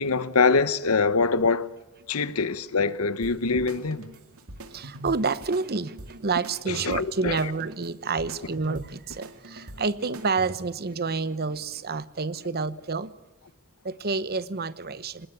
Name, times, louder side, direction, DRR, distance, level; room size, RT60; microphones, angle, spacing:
voice 1, 0.0-1.7 2.1-4.1 6.7-7.5, left 4 dB, 80° left, 1.1 m, -24 dB
sound 1, 3.2-10.8, right 1 dB, 85° right, 2.5 m, -43 dB
voice 2, 4.7-13.1 13.8-15.3, right 4 dB, 45° right, 1.0 m, -29 dB
25.0 x 20.0 x 8.2 m
head